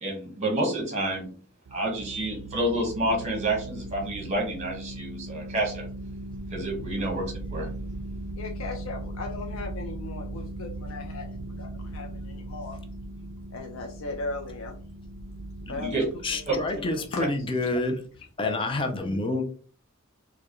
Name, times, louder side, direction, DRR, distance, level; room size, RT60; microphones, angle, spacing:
voice 1, 0.0-1.3 1.7-5.9 6.5-7.7 15.7-16.0 16.5-16.6, right 1 dB, 30° right, 1 dB, 1.3 m, -29 dB
sound 1, 1.7-17.9, right 1 dB, 90° right, 0.4 m, -38 dB
voice 2, 8.3-12.8 13.5-14.8 15.7-16.0 16.5-17.2, left 3 dB, 80° left, 2 dB, 0.5 m, -38 dB
voice 3, 16.2-18.0 18.4-19.4, left 2 dB, 25° left, 5 dB, 0.4 m, -28 dB
4.4 x 2.2 x 3.0 m, 0.41 s
head